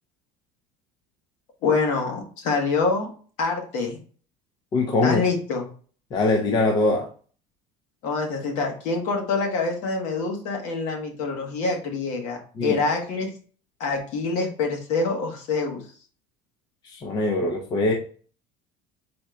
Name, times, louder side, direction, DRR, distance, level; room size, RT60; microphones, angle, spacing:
voice 1, 1.6-3.1 3.4-4.0 5.0-5.7 8.0-13.3 13.8-15.8, left 4 dB, 60° left, 2 dB, 1.4 m, -26 dB
voice 2, 4.7-5.2 6.1-7.1 12.6-12.8 16.8-17.9, left 2 dB, 30° left, 2 dB, 0.7 m, -22 dB
4.2 x 3.7 x 3.2 m, 0.42 s
cardioid pair, 155°, 14 cm